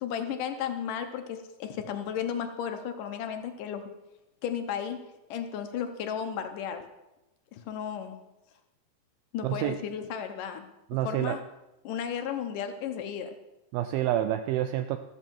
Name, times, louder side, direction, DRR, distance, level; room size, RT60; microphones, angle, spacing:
voice 1, 0.0-3.8 4.4-5.0 5.3-6.8 7.5-8.2 9.3-10.7 11.1-11.4 11.8-13.4, left 8 dB, 75° left, 7 dB, 2.0 m, -34 dB
voice 2, 9.4-9.8 10.9-11.4 13.7-15.0, right 12 dB, 80° right, 9 dB, 2.2 m, -28 dB
14.5 x 13.5 x 4.6 m, 0.97 s
omnidirectional pair, 4.7 m